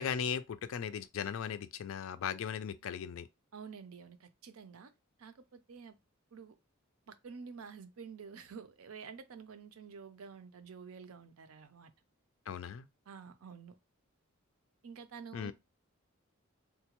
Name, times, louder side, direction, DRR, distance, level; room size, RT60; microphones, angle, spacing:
voice 1, 0.0-3.3 12.5-12.9 15.3-15.5, left 7 dB, 65° left, 0.3 m, -37 dB
voice 2, 3.5-4.9 5.2-6.0 6.3-6.6 7.1-11.9 13.1-13.8 14.8-15.5, right 6 dB, 80° right, 0.5 m, -49 dB
3.8 x 2.1 x 2.9 m
head